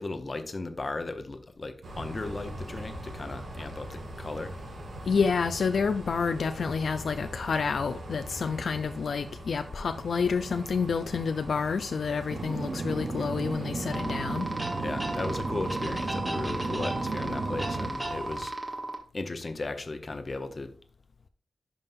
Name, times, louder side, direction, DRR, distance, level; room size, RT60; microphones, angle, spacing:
voice 1, 0.0-4.5 14.8-18.8 19.1-20.7, left 3 dB, 35° left, 0.8 m, -36 dB
sound 1, 1.8-18.4, equal, 80° right, 2.2 m, -42 dB
voice 2, 5.1-14.5, left 5 dB, 70° left, 0.4 m, -29 dB
sound 2, 12.3-17.9, right 3 dB, 45° right, 0.7 m, -34 dB
sound 3, 13.9-19.0, right 2 dB, 15° right, 1.3 m, -35 dB
11.0 x 5.3 x 2.6 m
wide cardioid pair, 165°, 0 cm